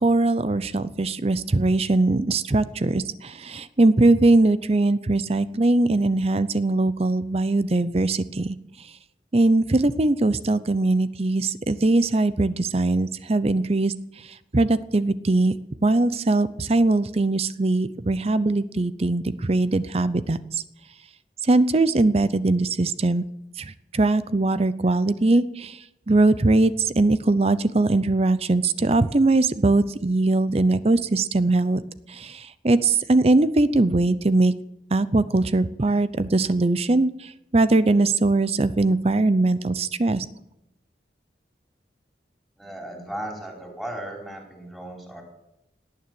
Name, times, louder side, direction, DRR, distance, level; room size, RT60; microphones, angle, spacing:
voice 1, 0.0-8.6 9.3-13.9 14.5-15.5 15.8-20.4 21.5-23.2 23.9-25.7 26.1-31.8 32.6-34.5 34.9-37.1 37.5-40.2, right 2 dB, 35° right, 15 dB, 0.6 m, -21 dB
voice 2, 42.6-45.2, right 1 dB, ahead, 0 dB, 4.6 m, -36 dB
18.0 x 9.6 x 7.7 m, 0.86 s
head